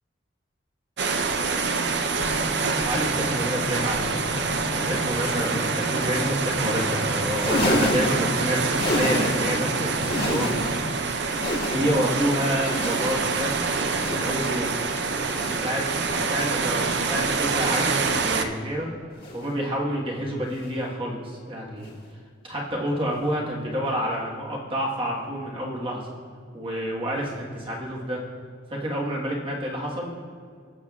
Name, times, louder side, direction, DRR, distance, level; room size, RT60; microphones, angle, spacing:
sound 1, 1.0-18.4, right 4 dB, 55° right, 0.6 m, -26 dB
sound 2, 2.2-11.0, left 2 dB, 25° left, 0.3 m, -35 dB
voice 1, 2.7-4.4 4.7-10.8 11.7-14.7 14.9-15.1 15.4-18.9 19.3-21.9 22.4-26.1 26.5-28.2 28.7-30.1, equal, 25° right, -3 dB, 1.4 m, -29 dB
sound 3, 7.2-9.6 9.9-10.9 11.2-12.2 12.6-13.4 13.9-14.6 15.2-15.8 16.5-17.1 17.8-18.4 19.2-19.6 20.5-20.8 21.8-22.0 23.2-23.3, left 1 dB, 50° left, 1.8 m, -30 dB
18.5 x 7.4 x 2.4 m, 2.1 s
head